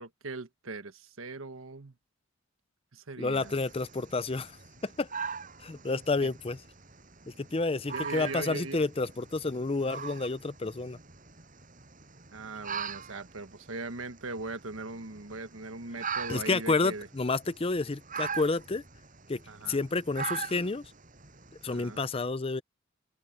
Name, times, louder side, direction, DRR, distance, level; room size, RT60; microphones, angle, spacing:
voice 1, 0.0-1.9 2.9-3.6 6.2-6.3 7.9-8.9 12.3-17.1 19.5-19.8 21.7-22.0, right 3 dB, 90° right, 1.4 m, -40 dB
voice 2, 3.2-4.5 4.8-5.1 5.6-6.6 7.3-11.0 16.3-18.8 19.3-19.4 19.7-20.8 21.6-22.6, left 3 dB, 30° left, 0.6 m, -30 dB
sound 1, 3.4-22.1, right 6 dB, 40° right, 7.2 m, -42 dB
open air
head